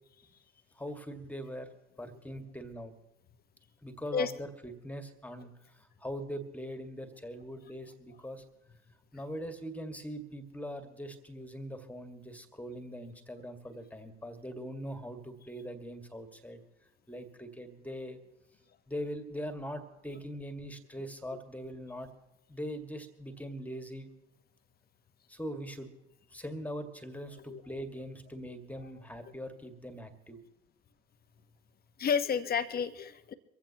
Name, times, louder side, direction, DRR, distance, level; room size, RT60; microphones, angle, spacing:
voice 1, 0.8-1.7 2.0-2.9 3.8-8.4 9.1-16.6 17.1-18.2 18.9-22.1 22.5-24.1 25.3-25.9 26.3-30.4, equal, 5° left, 6 dB, 1.9 m, -41 dB
voice 2, 32.0-33.3, left 6 dB, 30° left, 10 dB, 1.0 m, -31 dB
23.5 x 15.5 x 2.9 m, 0.92 s
hypercardioid pair, 80°, 30 cm